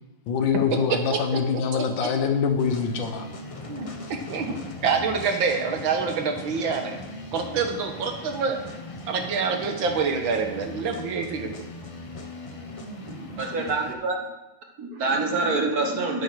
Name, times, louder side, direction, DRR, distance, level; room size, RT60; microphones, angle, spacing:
voice 1, 0.3-3.3, left 6 dB, 75° left, 6 dB, 1.9 m, -24 dB
sound 1, 2.6-13.9, left 1 dB, 35° left, 0.5 m, -39 dB
voice 2, 3.6-4.6 4.8-7.0 7.3-8.6 9.1-11.5, right 5 dB, 80° right, 5 dB, 2.1 m, -26 dB
voice 3, 13.4-14.2 14.8-16.2, right 3 dB, 55° right, 3 dB, 1.7 m, -25 dB
9.2 x 8.4 x 6.2 m, 1.0 s
omnidirectional pair, 2.1 m